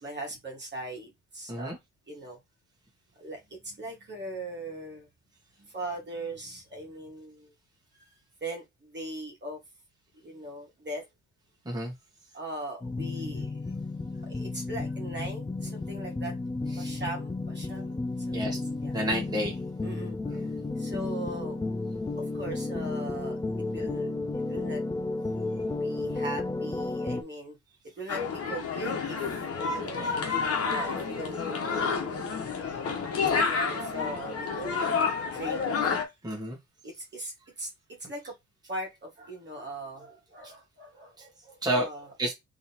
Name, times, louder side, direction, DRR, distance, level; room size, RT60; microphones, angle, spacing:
voice 1, 0.0-1.7 2.1-2.4 3.2-5.1 5.6-7.5 7.9-9.6 10.2-11.1 12.3-13.6 14.2-16.4 16.7-18.9 19.8-20.2 20.8-21.6 22.2-23.4 23.7-24.8 25.8-27.6 28.0-29.4 29.7-30.1 30.6-32.6 33.7-34.8 35.2-36.0 36.8-37.7 38.0-38.3 38.7-42.1, right 1 dB, 35° right, 1.7 m, -40 dB
sound 1, 12.8-27.2, left 3 dB, 10° left, 0.4 m, -33 dB
voice 2, 18.9-19.5 20.2-20.5 36.2-36.6 41.2-41.3 41.6-41.9 42.2-42.3, right 1 dB, 15° right, 1.6 m, -30 dB
sound 2, 28.1-36.0, left 5 dB, 50° left, 1.2 m, -29 dB
3.8 x 3.2 x 2.9 m
cardioid pair, 90°, 30 cm